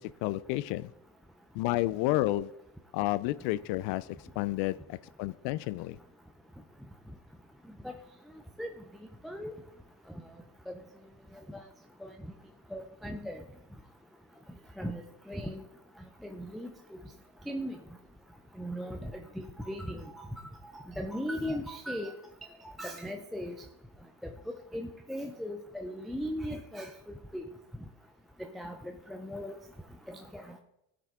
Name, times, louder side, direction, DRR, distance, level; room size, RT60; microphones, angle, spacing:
voice 1, 0.2-0.9 1.5-2.5 2.9-4.1 4.4-6.0, left 17 dB, 65° left, 17 dB, 0.5 m, -30 dB
voice 2, 12.7-13.4 14.8-15.6 16.2-17.0 17.5-17.8 18.6-20.3 20.7-22.1 22.8-23.5 24.5-26.9 27.3-27.4 28.5-28.8 29.1-29.6 30.1-30.6, equal, ahead, 3 dB, 0.3 m, -38 dB
11.5 x 5.0 x 3.6 m, 0.86 s
supercardioid pair, 90°, 43 cm